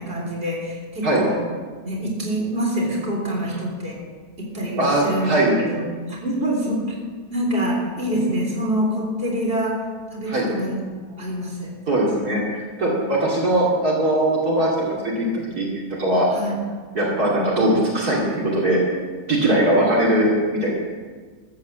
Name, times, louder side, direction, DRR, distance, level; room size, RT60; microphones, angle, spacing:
voice 1, 0.0-1.4 1.8-4.0 4.4-7.0 7.3-9.8 10.1-10.8 11.1-11.7 12.8-13.0 16.3-16.6, equal, 35° right, -3 dB, 3.8 m, -26 dB
voice 2, 4.8-5.5 8.1-8.4 10.3-10.5 11.9-15.7 16.0-16.3 16.9-18.8 19.3-20.8, right 1 dB, 65° right, -5 dB, 3.2 m, -20 dB
14.0 x 9.4 x 7.5 m, 1.5 s
omnidirectional pair, 1.8 m